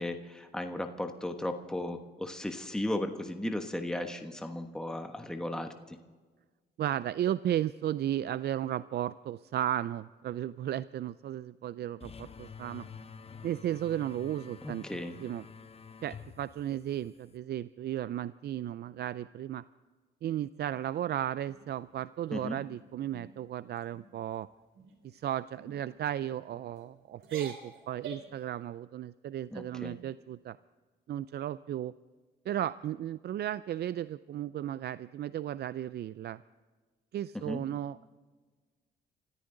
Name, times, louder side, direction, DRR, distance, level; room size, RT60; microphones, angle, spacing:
voice 1, 0.0-6.0 14.6-15.1 22.3-22.6 29.5-30.0 37.3-37.6, left 1 dB, 5° left, 5 dB, 1.2 m, -36 dB
voice 2, 6.8-12.8 13.4-15.4 16.0-19.6 20.2-24.5 25.0-30.6 31.1-31.9 32.5-36.4 37.1-38.1, right 11 dB, 55° right, 16 dB, 0.4 m, -34 dB
sound 1, 12.0-17.4, left 6 dB, 30° left, 0.9 m, -49 dB
sound 2, 21.5-22.1 22.5-22.7 23.1-23.4 23.8-24.1 24.7-25.1 25.6-25.8 26.5-26.8 27.2-28.4, right 4 dB, 75° right, 3.0 m, -48 dB
25.5 x 14.0 x 3.9 m, 1.4 s
cardioid pair, 90°, 20 cm